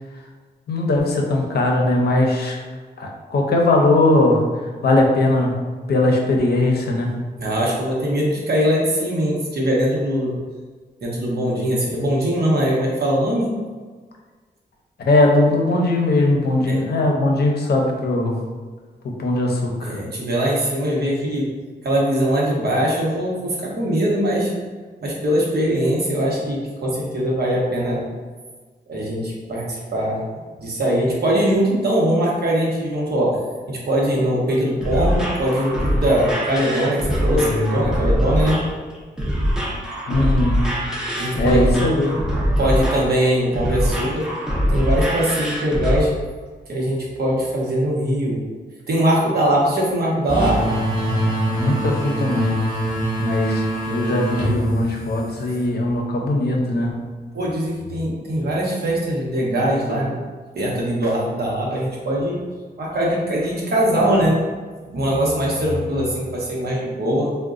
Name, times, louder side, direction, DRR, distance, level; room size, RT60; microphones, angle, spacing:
voice 1, 0.7-2.6 3.0-5.6 5.9-7.1 15.0-18.4 19.2-20.0 37.4-37.7 40.1-40.6 41.4-42.2 51.6-52.7 53.2-56.9, left 2 dB, 65° left, 0 dB, 0.6 m, -19 dB
voice 2, 7.4-10.3 11.0-13.5 16.7-16.8 19.8-21.5 21.8-24.5 25.0-28.0 28.9-30.2 30.6-33.4 33.7-38.6 41.2-41.7 42.6-44.2 44.7-46.1 46.7-48.4 48.9-50.6 57.3-60.2 60.5-62.4 62.8-64.4 64.9-67.3, equal, 65° right, -4 dB, 0.8 m, -21 dB
sound 1, 34.5-46.0, equal, 5° right, 0.5 m, -23 dB
sound 2, 50.3-55.7, right 1 dB, 25° right, 0.9 m, -24 dB
3.7 x 2.1 x 2.4 m, 1.4 s
wide cardioid pair, 125°, 18 cm